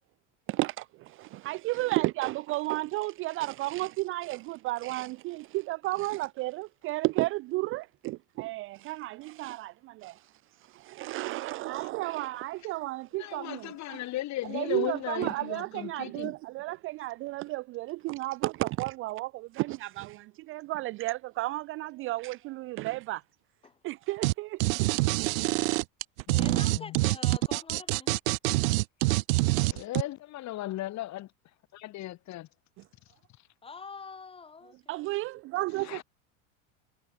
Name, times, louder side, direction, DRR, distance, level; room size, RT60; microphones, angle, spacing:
voice 1, 0.5-10.2 10.7-14.0 14.5-23.2 23.8-24.6 34.9-36.0, right 19 dB, 35° right, 0.4 m, -33 dB
voice 2, 13.1-16.3 26.3-27.0 29.6-31.3 31.7-32.5 35.8-36.0, left 15 dB, 45° left, 5.8 m, -37 dB
sound 1, 24.2-24.3 24.6-30.0, right 22 dB, 85° right, 0.5 m, -25 dB
voice 3, 26.4-28.1 33.6-35.1, left 5 dB, 15° left, 2.7 m, -45 dB
supercardioid pair, 125°, 39 cm